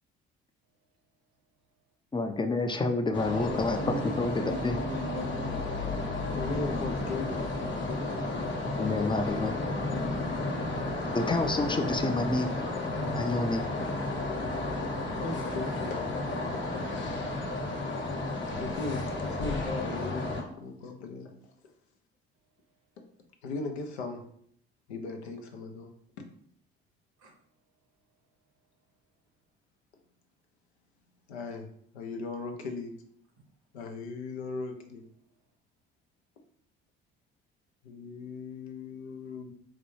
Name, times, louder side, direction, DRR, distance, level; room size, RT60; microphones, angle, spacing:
voice 1, 2.1-3.8 4.2-4.8 8.8-9.5 11.1-12.7 13.2-13.6, left 2 dB, 15° left, 6 dB, 0.4 m, -29 dB
sound 1, 3.1-20.4, left 2 dB, 35° left, 1.0 m, -32 dB
voice 2, 3.3-5.5 27.2-27.3, equal, 70° right, 3 dB, 0.9 m, -39 dB
voice 3, 6.2-8.5 15.1-16.3 16.8-16.9 18.6-21.3 23.4-24.2 24.9-25.9 26.2-26.3 31.3-31.7 31.9-32.9 33.7-35.0 37.8-39.5, left 3 dB, 90° left, 4 dB, 0.5 m, -38 dB
4.0 x 2.3 x 3.1 m, 0.66 s
hypercardioid pair, 50°, 32 cm